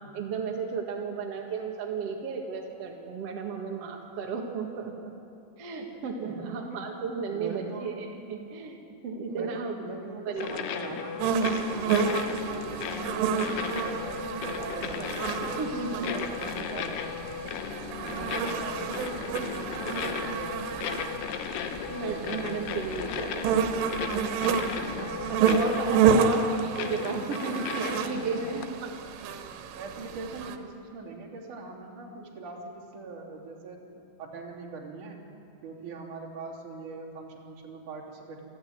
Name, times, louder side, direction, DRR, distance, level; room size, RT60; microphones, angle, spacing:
voice 1, 0.0-5.1 5.6-8.8 9.0-9.7 10.2-10.6 15.6-16.1 21.9-23.4 25.4-26.4 26.7-28.9, right 5 dB, 60° right, 1 dB, 1.6 m, -34 dB
voice 2, 6.2-6.6 7.3-8.0 9.2-11.2 11.8-15.6 16.0-17.1 18.0-20.9 22.1-23.9 24.4-25.6 26.0-26.5 28.3-28.8 29.8-35.2 35.6-38.4, right 3 dB, 45° right, -4 dB, 4.3 m, -41 dB
sound 1, 10.4-28.7, left 7 dB, 70° left, 2.6 m, -36 dB
sound 2, 11.2-30.6, right 6 dB, 85° right, 3.8 m, -30 dB
27.5 x 13.0 x 9.4 m, 2.6 s
omnidirectional pair, 5.6 m